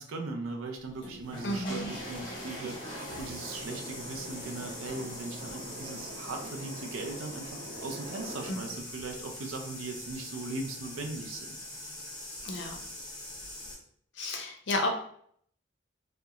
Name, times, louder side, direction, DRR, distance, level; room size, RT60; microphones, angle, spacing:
voice 1, 0.0-11.6, right 3 dB, 90° right, 3 dB, 0.5 m, -39 dB
sound 1, 0.9-13.7, left 1 dB, 20° left, 0.7 m, -43 dB
voice 2, 1.4-1.9 8.5-8.6 12.4-12.8 14.1-14.9, left 1 dB, 60° left, 3 dB, 0.5 m, -32 dB
sound 2, 1.7-8.5, right 1 dB, 45° right, 0.7 m, -43 dB
2.8 x 2.1 x 2.3 m, 0.64 s
head